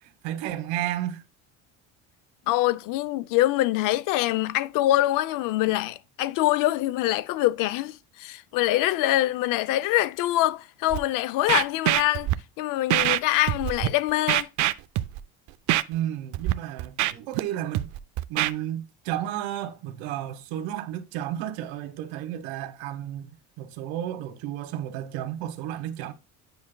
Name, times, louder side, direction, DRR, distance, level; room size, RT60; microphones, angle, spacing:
voice 1, 0.0-1.2 15.9-17.9 18.3-23.3 23.6-26.1, right 12 dB, 85° right, 1.3 m, -32 dB
voice 2, 2.5-12.3 12.6-14.5, left 15 dB, 60° left, 0.5 m, -24 dB
Scratching (performance technique), 10.9-11.0 11.5-12.3 12.9-13.2 13.5-13.9 14.3-15.2 15.7-15.8 16.3-16.5 16.8-17.4 17.7-18.5, right 16 dB, 50° right, 0.5 m, -24 dB
9.6 x 5.8 x 2.2 m
cardioid pair, 135°, 37 cm